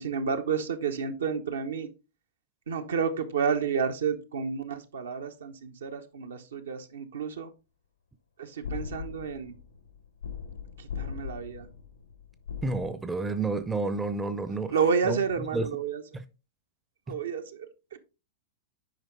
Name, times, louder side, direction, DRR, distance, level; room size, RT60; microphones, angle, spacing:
voice 1, 0.0-1.9 2.7-7.5 8.4-9.6 10.8-11.7 14.7-16.0 17.1-18.0, right 6 dB, 70° right, 1.1 m, -30 dB
sound 1, 8.6-12.9, left 7 dB, 75° left, 1.1 m, -39 dB
voice 2, 12.6-14.7 15.0-15.2 15.5-15.7 16.1-16.2 17.1-17.2, right 3 dB, 10° right, 0.7 m, -30 dB
9.1 x 5.1 x 3.7 m
figure-of-eight pair, 100°, 0 cm